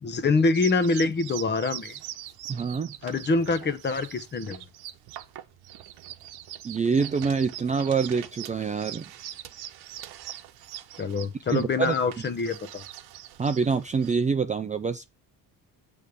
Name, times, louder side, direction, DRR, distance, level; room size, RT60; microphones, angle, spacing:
voice 1, 0.0-2.0 3.0-4.6 11.0-12.8, left 3 dB, 30° left, 0.9 m, -25 dB
sound 1, 0.5-14.3, right 13 dB, 90° right, 0.9 m, -42 dB
voice 2, 2.5-3.0 6.6-9.0 11.5-11.9 13.4-15.1, right 5 dB, 20° right, 0.4 m, -26 dB
8.3 x 3.4 x 5.2 m
cardioid pair, 135°, 38 cm